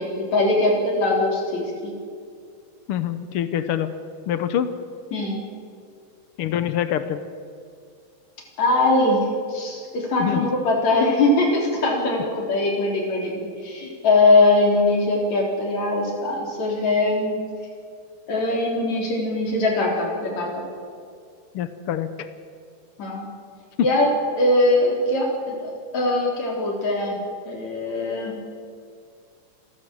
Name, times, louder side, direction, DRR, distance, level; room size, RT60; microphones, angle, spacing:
voice 1, 0.0-1.9 5.1-5.4 8.6-9.2 9.5-17.4 18.3-20.6 23.0-23.2 23.8-24.1 24.4-28.4, left 2 dB, 60° left, 0 dB, 4.8 m, -21 dB
voice 2, 2.9-3.9 4.3-4.7 6.4-7.2 10.2-10.5 21.5-22.3 23.8-23.9, left 10 dB, 85° left, 11 dB, 1.2 m, -25 dB
27.5 x 12.5 x 7.7 m, 2.2 s
omnidirectional pair, 3.7 m